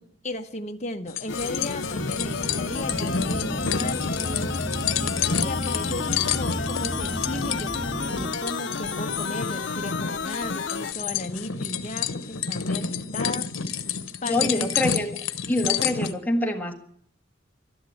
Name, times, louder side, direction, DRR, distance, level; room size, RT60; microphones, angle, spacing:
voice 1, 0.2-4.6 5.0-13.5 14.2-14.7, left 1 dB, 35° left, 4 dB, 1.0 m, -35 dB
sound 1, 1.1-16.1, left 7 dB, 90° left, 1.0 m, -30 dB
sound 2, 1.3-10.9, left 5 dB, 65° left, 0.7 m, -32 dB
sound 3, 1.3-8.3, right 1 dB, 60° right, 7.6 m, -33 dB
voice 2, 14.2-15.1 15.5-16.7, left 1 dB, 10° left, 2 dB, 1.6 m, -25 dB
12.5 x 11.0 x 8.5 m, 0.62 s
head